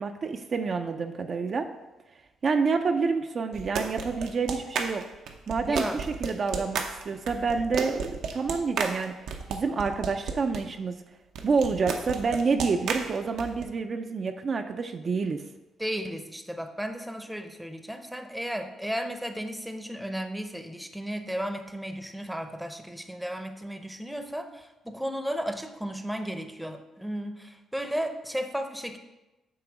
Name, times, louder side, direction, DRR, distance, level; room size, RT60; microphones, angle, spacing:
voice 1, 0.0-1.7 2.4-5.1 5.5-9.2 9.5-11.0 11.4-15.4, right 4 dB, 45° right, 5 dB, 0.4 m, -28 dB
sound 1, 3.5-10.6 11.3-13.6, right 5 dB, 80° right, 0.7 m, -33 dB
voice 2, 5.7-6.0 15.8-29.0, equal, 5° right, 7 dB, 0.7 m, -34 dB
8.5 x 3.0 x 6.0 m, 1.0 s
cardioid pair, 90°, 0 cm